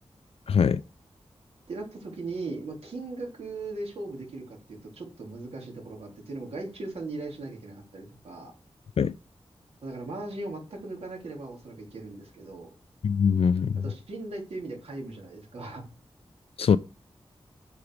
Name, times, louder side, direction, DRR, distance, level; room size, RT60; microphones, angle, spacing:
voice 1, 0.5-0.8 9.0-9.1 13.0-13.8 16.6-16.8, left 6 dB, 70° left, 0.4 m, -22 dB
voice 2, 1.7-8.5 9.8-12.7 13.8-15.9, right 2 dB, 85° right, 3.2 m, -38 dB
8.7 x 7.0 x 4.8 m
wide cardioid pair, 125°, 10 cm